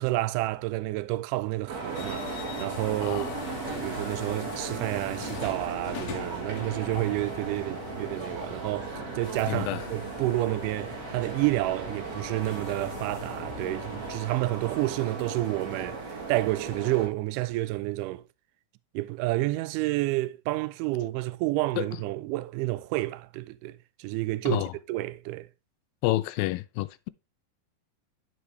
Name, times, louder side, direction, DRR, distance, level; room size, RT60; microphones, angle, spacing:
voice 1, 0.0-3.3 3.7-16.0 16.3-18.2 18.9-24.6 24.9-25.5, right 18 dB, 85° right, 1.9 m, -30 dB
sound 1, 1.7-17.1, right 4 dB, 50° right, 2.9 m, -37 dB
sound 2, 1.9-14.2, left 7 dB, 70° left, 1.6 m, -42 dB
voice 2, 3.0-3.5 9.5-9.9 21.8-22.0 24.5-24.7 26.0-27.1, left 17 dB, 85° left, 2.3 m, -29 dB
11.5 x 5.0 x 3.2 m
omnidirectional pair, 4.2 m